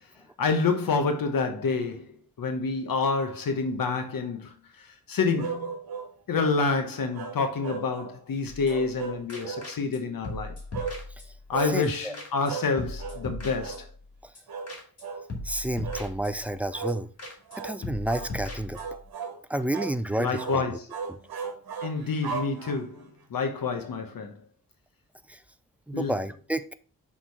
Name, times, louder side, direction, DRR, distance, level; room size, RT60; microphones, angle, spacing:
voice 1, 0.4-5.7 6.3-10.6 11.5-13.8 20.2-20.8 21.8-24.4 25.9-26.1, left 4 dB, 70° left, 1.0 m, -28 dB
sound 1, 5.4-6.1 7.1-8.2 8.7-9.7 10.7-11.0 11.5-11.8 12.5-12.7 13.0-13.2 13.6-13.8 14.5-14.7 15.0-15.3 15.8-16.1 16.7-17.0 17.5-17.8 18.1-18.3 18.7-19.4 19.7-20.0 20.3-20.6 20.9-23.0, right 5 dB, 80° right, 1.2 m, -35 dB
sound 2, 8.5-9.0 9.3-10.0 10.2-11.5 11.8-11.9 12.1-12.5 12.8-14.1 14.3-14.4 14.7-15.0 15.3-16.6 16.9-17.0 17.2-17.6 17.8-19.1, left 2 dB, 45° left, 2.4 m, -38 dB
voice 2, 11.6-12.2 14.2-14.3 15.4-17.1 17.6-18.8 19.5-20.8 21.1-21.2 25.3-25.4 25.9-26.7, right 1 dB, 5° right, 0.4 m, -30 dB
6.3 x 3.8 x 4.6 m
wide cardioid pair, 115°, 36 cm